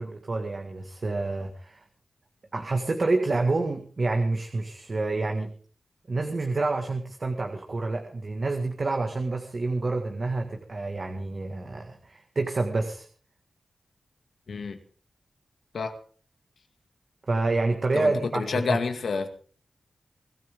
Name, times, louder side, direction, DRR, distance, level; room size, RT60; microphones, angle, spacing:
voice 1, 0.0-1.8 2.5-5.5 6.1-13.1 17.3-18.8, right 3 dB, 50° right, 4 dB, 1.9 m, -28 dB
voice 2, 14.5-14.8 15.7-15.9 17.9-19.3, left 4 dB, 80° left, 7 dB, 2.2 m, -29 dB
24.5 x 14.0 x 3.7 m, 0.43 s
cardioid pair, 65°, 0 cm